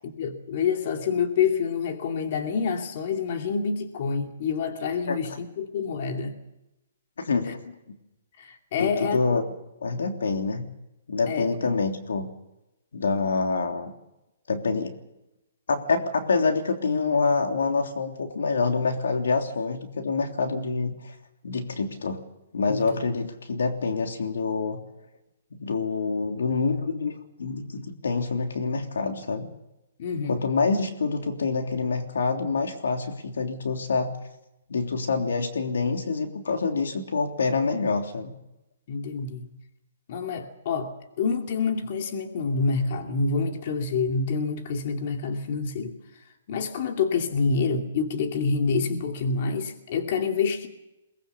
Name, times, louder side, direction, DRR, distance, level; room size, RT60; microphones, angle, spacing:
voice 1, 0.0-6.3 8.4-9.4 11.3-11.8 22.7-23.0 30.0-30.4 38.9-39.5 40.1-45.9 46.5-50.7, left 5 dB, 45° left, 4 dB, 2.6 m, -27 dB
voice 2, 7.2-7.9 8.8-9.5 9.8-10.7 11.1-12.3 12.9-13.9 14.5-15.0 15.7-21.1 21.4-22.2 22.5-24.8 25.5-29.5 30.3-34.1 34.7-38.3, left 4 dB, 85° left, 4 dB, 3.3 m, -26 dB
22.5 x 20.0 x 7.1 m, 0.93 s
hypercardioid pair, 160°, 0 cm